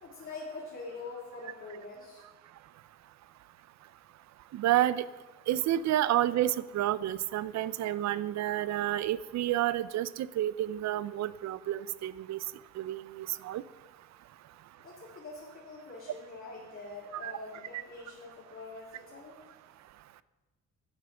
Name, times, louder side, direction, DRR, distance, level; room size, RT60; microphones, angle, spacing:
voice 1, 0.0-2.2 14.8-19.4, left 3 dB, 45° left, -6 dB, 2.4 m, -44 dB
voice 2, 4.5-5.1 5.5-12.4 12.8-13.6 17.2-17.3, right 13 dB, 65° right, 17 dB, 0.5 m, -30 dB
11.0 x 6.3 x 5.7 m, 1.2 s
cardioid pair, 90°, 30 cm